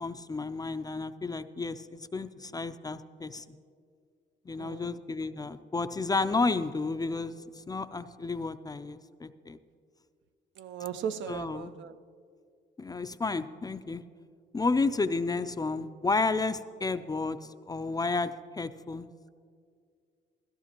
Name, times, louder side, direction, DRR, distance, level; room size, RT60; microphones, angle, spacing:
voice 1, 0.0-3.4 4.5-7.3 7.7-9.6 11.3-11.7 12.8-14.0 14.5-17.4 17.7-19.1, left 3 dB, 20° left, 0.4 m, -31 dB
voice 2, 4.6-5.0 10.6-12.0, right 8 dB, 70° right, 0.6 m, -37 dB
16.5 x 15.0 x 2.9 m
cardioid pair, 90°, 20 cm